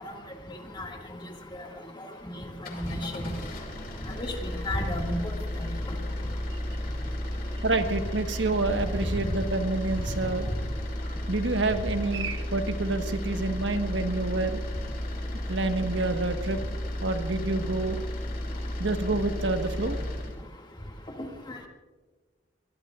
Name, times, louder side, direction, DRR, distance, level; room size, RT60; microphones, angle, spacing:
sound 1, 2.5-20.4, left 1 dB, 50° left, 2.7 m, -33 dB
voice 1, 2.7-3.3 4.2-5.2 5.6-5.7 21.5-21.7, left 1 dB, 25° left, 2 dB, 2.0 m, -32 dB
voice 2, 7.6-10.5 11.3-14.6 15.5-16.6 17.0-18.0 18.8-20.0, right 2 dB, 80° right, 6 dB, 1.3 m, -28 dB
23.5 x 21.5 x 2.4 m, 1.3 s
head